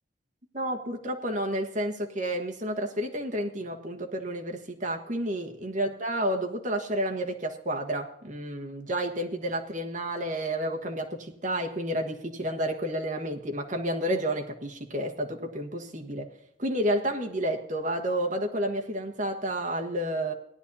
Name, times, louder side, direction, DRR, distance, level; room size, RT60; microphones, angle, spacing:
voice 1, 0.5-16.3 16.6-20.3, right 1 dB, 40° right, 2 dB, 1.3 m, -30 dB
17.5 x 11.0 x 2.7 m, 0.80 s
head